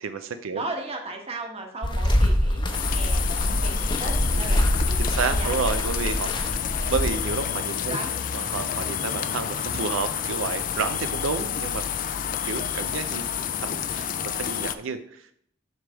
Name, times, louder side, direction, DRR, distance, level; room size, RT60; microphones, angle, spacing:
voice 1, 0.0-0.6 4.3-4.7 5.0-6.6 6.9-8.0 8.3-11.8 12.4-13.3 13.6-15.3, right 5 dB, 85° right, 9 dB, 0.5 m, -30 dB
voice 2, 0.5-5.6 7.9-8.2 13.5-13.7, right 2 dB, 30° right, 2 dB, 1.2 m, -36 dB
sound 1, 1.8-7.4, equal, 25° left, 0.7 m, -24 dB
sound 2, 2.7-14.7, left 9 dB, 40° left, 0.4 m, -29 dB
7.8 x 3.4 x 6.2 m, 0.67 s
head